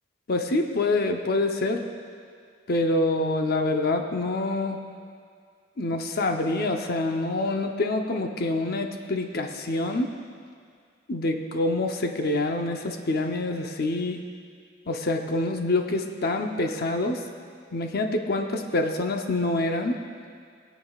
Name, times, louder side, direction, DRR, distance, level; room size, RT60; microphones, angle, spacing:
voice 1, 0.3-1.8 2.7-4.8 5.8-10.1 11.1-14.2 14.9-17.2 17.7-20.0, left 2 dB, 55° left, 4 dB, 0.8 m, -26 dB
25.5 x 8.6 x 2.4 m, 2.2 s
head